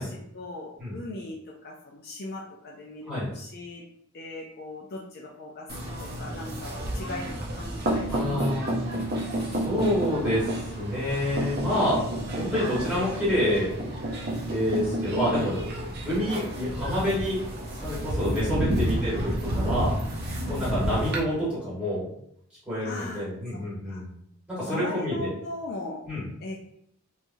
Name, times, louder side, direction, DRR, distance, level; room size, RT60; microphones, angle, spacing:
voice 1, 0.0-3.8 4.1-8.8 18.2-18.8 20.4-21.0 22.8-23.3 23.5-24.0 24.6-26.0 26.4-26.6, left 2 dB, 45° left, -2 dB, 0.4 m, -39 dB
sound 1, 5.7-21.2, right 1 dB, 45° right, 0.5 m, -30 dB
voice 2, 8.1-8.9 9.4-12.0 12.4-13.7 14.5-15.6 16.0-17.4 17.8-20.0 20.5-22.1 22.7-24.1 24.5-25.3 26.1-26.3, left 1 dB, 5° right, -9 dB, 1.3 m, -28 dB
3.1 x 2.3 x 2.6 m, 0.73 s
head